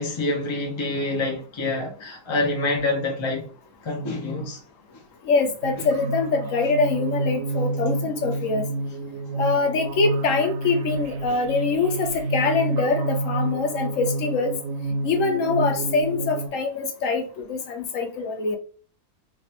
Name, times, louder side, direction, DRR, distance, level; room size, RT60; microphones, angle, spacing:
voice 1, 0.0-3.5 3.8-4.6, left 2 dB, 45° left, 0.3 m, -26 dB
voice 2, 5.3-8.6 9.4-14.5 15.0-18.6, left 4 dB, 65° left, 1.0 m, -24 dB
sound 1, 5.6-16.5, right 2 dB, 70° right, 0.9 m, -29 dB
3.3 x 2.4 x 2.7 m
omnidirectional pair, 1.6 m